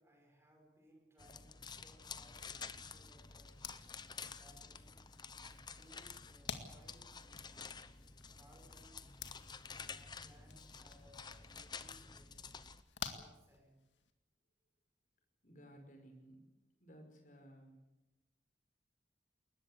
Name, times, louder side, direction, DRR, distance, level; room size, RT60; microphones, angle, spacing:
voice 1, 0.0-3.6 4.1-5.1 5.3-7.9 8.3-9.1 9.8-12.6 13.0-13.8, equal, 15° right, 2 dB, 5.9 m, -66 dB
sound 1, 1.2-12.8, left 5 dB, 25° left, 0.8 m, -51 dB
sound 2, 3.5-14.1, left 6 dB, 85° left, 2.1 m, -52 dB
voice 2, 15.4-16.4 16.8-17.8, right 1 dB, 45° left, 4 dB, 5.4 m, -57 dB
21.5 x 20.5 x 8.2 m, 0.98 s
head